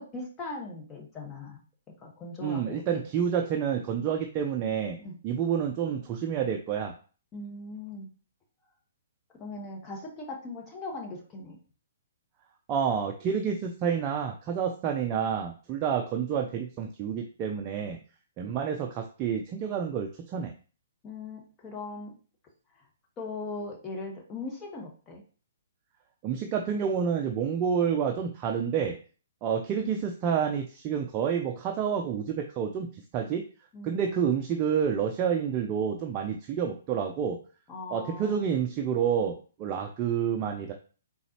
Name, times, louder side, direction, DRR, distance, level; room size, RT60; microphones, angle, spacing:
voice 1, 0.0-1.6 2.0-3.0 5.0-5.2 7.3-8.1 9.3-11.6 21.0-22.1 23.2-25.2 33.7-34.1 37.7-38.4, left 2 dB, 20° left, 0 dB, 1.4 m, -39 dB
voice 2, 2.4-5.0 5.2-6.9 12.7-18.0 18.4-20.5 26.2-29.0 29.4-32.9 33.1-33.4 33.8-37.4 37.9-40.7, right 7 dB, 30° right, 2 dB, 0.5 m, -29 dB
4.0 x 3.9 x 2.9 m, 0.38 s
figure-of-eight pair, 130°, 0 cm